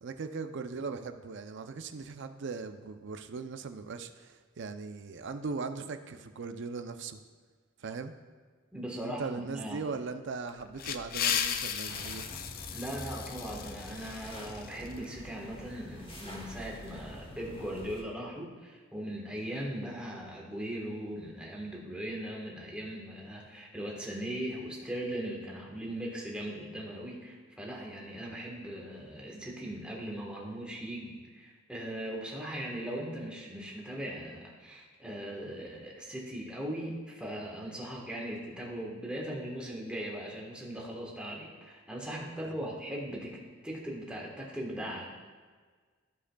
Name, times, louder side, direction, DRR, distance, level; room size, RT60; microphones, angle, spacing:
voice 1, 0.0-7.2 7.8-8.1 9.0-12.3 42.4-42.6, right 4 dB, 60° right, 8 dB, 0.5 m, -39 dB
voice 2, 8.7-9.9 12.7-43.4 43.6-45.1, right 1 dB, 5° right, -3 dB, 1.3 m, -39 dB
sound 1, 10.5-15.0, left 8 dB, 45° left, 0.4 m, -35 dB
sound 2, 11.9-18.0, equal, 25° left, 1.1 m, -46 dB
14.0 x 4.9 x 2.3 m, 1.5 s
head